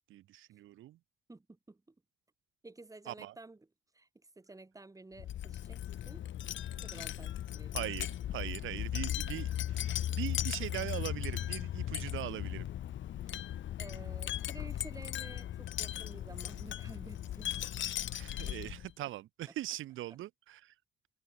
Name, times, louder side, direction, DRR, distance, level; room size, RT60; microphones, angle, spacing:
voice 1, 0.1-1.0 3.1-3.3 7.7-12.7 18.1-20.7, right 14 dB, 85° right, 4.2 m, -41 dB
voice 2, 1.3-1.9 2.6-3.7 3.9-4.1 4.4-5.8 6.1-6.2 6.7-8.0 13.3-13.4 13.8-17.7 19.5-19.6, right 2 dB, 15° right, 4.8 m, -52 dB
Wind chime, 5.2-18.9, left 12 dB, 70° left, 2.3 m, -37 dB
cardioid pair, 90°, 20 cm